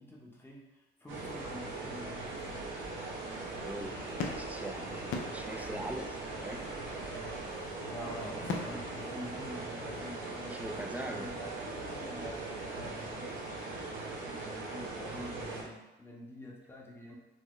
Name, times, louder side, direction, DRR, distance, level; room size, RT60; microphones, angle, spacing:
voice 1, 0.0-2.7 7.5-10.6 11.0-11.6 11.9-13.4 14.2-17.2, equal, 10° left, -2 dB, 0.8 m, -47 dB
sound 1, 1.1-15.6, right 2 dB, 75° right, 0.9 m, -40 dB
voice 2, 3.6-6.7 8.2-8.5 10.5-11.3, right 1 dB, 10° right, 3 dB, 0.3 m, -42 dB
sound 2, 3.8-9.7, left 4 dB, 80° left, 0.5 m, -43 dB
sound 3, 6.2-13.6, right 2 dB, 50° right, 0.6 m, -53 dB
4.2 x 2.1 x 3.1 m, 1.1 s
cardioid pair, 90°, 20 cm